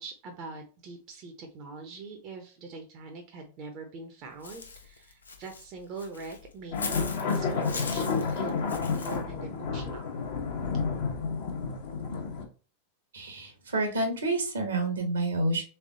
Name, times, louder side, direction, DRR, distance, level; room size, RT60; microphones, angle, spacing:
voice 1, 0.0-10.2, right 4 dB, 40° right, 4 dB, 0.7 m, -43 dB
Walk footsteps / Bird, 4.4-9.2, left 4 dB, 75° left, 0.5 m, -40 dB
sound 1, 6.7-12.4, left 5 dB, 55° left, 0.9 m, -30 dB
voice 2, 13.1-15.6, right 2 dB, 70° right, 5 dB, 1.0 m, -29 dB
3.5 x 3.3 x 2.5 m, 0.37 s
figure-of-eight pair, 90°, 0 cm